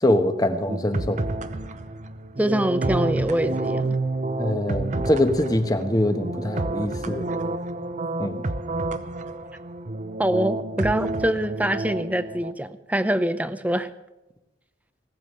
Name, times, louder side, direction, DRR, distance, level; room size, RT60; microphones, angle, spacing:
voice 1, 0.0-1.2 4.4-7.3 8.2-8.4, left 1 dB, 20° left, 1.2 m, -23 dB
sound 1, 0.7-12.5, right 2 dB, 45° right, 0.8 m, -29 dB
voice 2, 2.4-4.0 10.2-13.9, right 1 dB, 10° right, 0.7 m, -24 dB
18.5 x 7.2 x 9.0 m
head